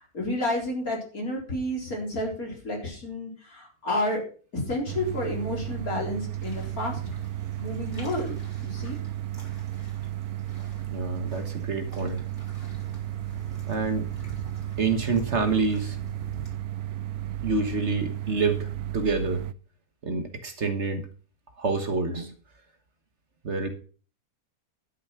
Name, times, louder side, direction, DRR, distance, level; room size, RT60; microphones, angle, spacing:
voice 1, 0.1-4.2 4.5-7.0 7.6-9.0, left 1 dB, 70° left, -1 dB, 4.6 m, -30 dB
sound 1, 4.9-19.5, right 13 dB, 75° right, 1.1 m, -34 dB
sound 2, 6.4-16.5, right 1 dB, 50° left, 3.8 m, -47 dB
voice 2, 10.9-12.2 13.7-14.1 14.8-16.0 17.4-19.4 20.0-21.0 21.6-22.3 23.4-23.7, right 4 dB, 50° right, 7 dB, 1.6 m, -27 dB
12.0 x 7.1 x 5.8 m, 0.40 s
omnidirectional pair, 1.6 m